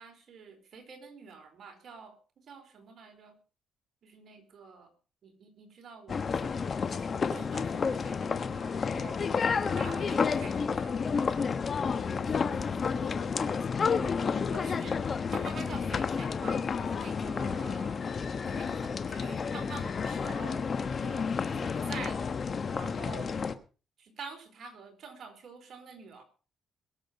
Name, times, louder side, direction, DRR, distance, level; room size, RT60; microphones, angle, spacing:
voice 1, 0.0-3.4 4.0-4.9 5.2-9.2 9.7-11.4 14.5-15.0 15.3-18.0 18.4-20.7 21.0-22.3 22.7-23.3 24.0-26.2, right 5 dB, 60° right, 4 dB, 4.4 m, -47 dB
sound 1, 6.1-23.5, left 5 dB, 45° left, 1.2 m, -31 dB
voice 2, 11.9-14.0 16.7-17.3, left 7 dB, 65° left, 7 dB, 3.7 m, -46 dB
22.0 x 7.7 x 5.3 m, 0.37 s
cardioid pair, 90°, 0 cm